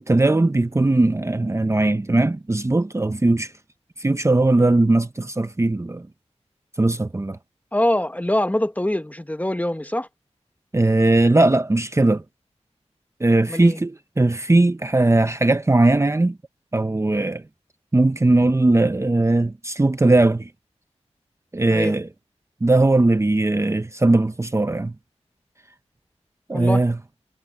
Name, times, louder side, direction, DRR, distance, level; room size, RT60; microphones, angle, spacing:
voice 1, 0.1-3.5 4.0-6.1 6.8-7.4 10.7-12.2 13.2-16.4 16.7-17.4 17.9-20.5 21.5-22.1 22.6-24.9 26.5-27.0, right 2 dB, 25° right, 0.7 m, -19 dB
voice 2, 7.7-10.1 13.5-13.8 21.7-21.9 26.5-26.8, left 1 dB, 15° left, 1.3 m, -24 dB
wide cardioid pair, 65°, 12 cm